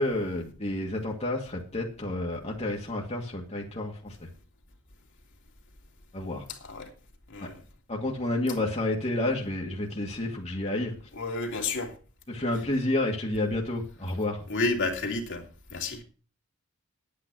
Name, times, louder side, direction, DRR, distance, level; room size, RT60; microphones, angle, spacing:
voice 1, 0.0-4.3 6.1-6.5 7.4-7.5 7.9-10.9 12.3-14.4, left 1 dB, 30° left, 1.7 m, -30 dB
voice 2, 6.5-6.9 7.3-7.6 11.1-11.9 14.5-15.4 15.7-16.0, left 3 dB, 60° left, 2.5 m, -30 dB
9.8 x 8.8 x 6.1 m
head